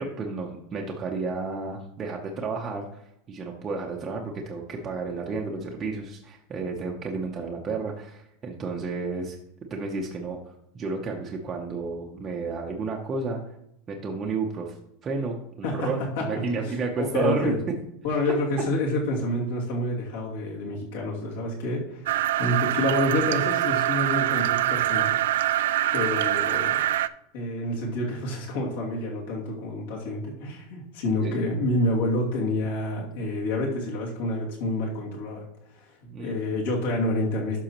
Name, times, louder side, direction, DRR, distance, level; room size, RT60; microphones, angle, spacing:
voice 1, 0.0-9.4 9.7-13.4 13.9-14.8 15.0-17.5 31.2-31.3 36.1-36.3, right 4 dB, 15° right, -1 dB, 0.7 m, -31 dB
voice 2, 15.6-16.7 17.0-17.5 18.0-22.0 22.4-25.4 25.9-26.8 27.3-35.4 36.0-37.6, left 1 dB, 65° left, -2 dB, 2.5 m, -28 dB
sound 1, 22.1-27.1, right 13 dB, 80° right, 0.3 m, -24 dB
11.5 x 6.2 x 3.0 m, 0.79 s
supercardioid pair, 180°, 0 cm